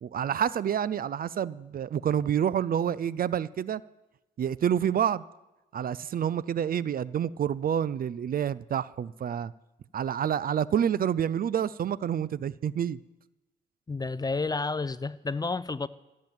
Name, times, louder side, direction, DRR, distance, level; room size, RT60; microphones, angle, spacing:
voice 1, 0.0-3.8 4.4-5.2 5.7-9.5 9.9-13.0, right 9 dB, 55° right, 0.5 m, -28 dB
voice 2, 13.9-15.9, left 3 dB, 20° left, 0.6 m, -30 dB
15.0 x 7.6 x 9.0 m
cardioid pair, 65°, 18 cm